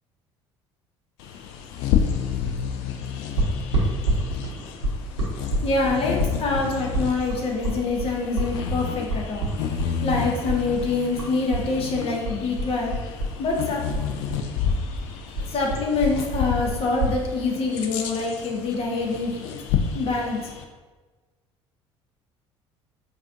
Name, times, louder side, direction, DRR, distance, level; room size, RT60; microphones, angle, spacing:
Bird vocalization bird call bird song, 1.2-20.6, left 7 dB, 60° left, 0.4 m, -31 dB
sound 1, 3.4-11.7 11.9-13.6 13.9-17.2, right 2 dB, 80° right, 0.8 m, -27 dB
voice 1, 5.6-9.5 10.0-12.9 13.4-13.8 15.5-19.4 19.9-20.5, left 3 dB, 40° left, 0 dB, 0.7 m, -25 dB
4.9 x 2.6 x 2.6 m, 1.3 s
figure-of-eight pair, 60°, 15 cm